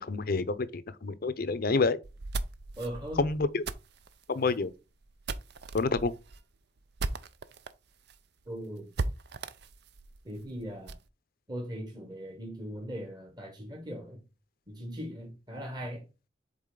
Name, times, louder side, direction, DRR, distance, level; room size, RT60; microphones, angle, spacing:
voice 1, 0.0-2.0 3.2-3.6 4.3-4.7 5.7-6.1, left 3 dB, 55° left, 0.6 m, -28 dB
sound 1, 2.0-7.7 8.1-8.2 8.4-8.5 8.9-11.1, right 3 dB, 60° right, 0.5 m, -38 dB
voice 2, 2.8-3.2 8.5-8.9 10.2-11.0 11.5-14.2 14.7-16.1, equal, 25° right, 1.2 m, -39 dB
7.4 x 4.0 x 3.8 m
head